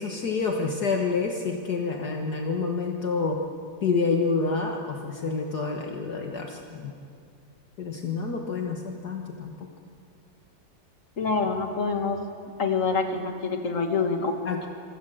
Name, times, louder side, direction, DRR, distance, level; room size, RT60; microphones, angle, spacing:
voice 1, 0.0-3.4 3.8-6.9 7.8-9.7 14.5-14.7, left 4 dB, 60° left, 2 dB, 2.1 m, -28 dB
voice 2, 11.2-12.2 12.6-14.4, left 4 dB, 45° left, 4 dB, 2.5 m, -26 dB
27.0 x 24.5 x 7.9 m, 2.4 s
omnidirectional pair, 2.0 m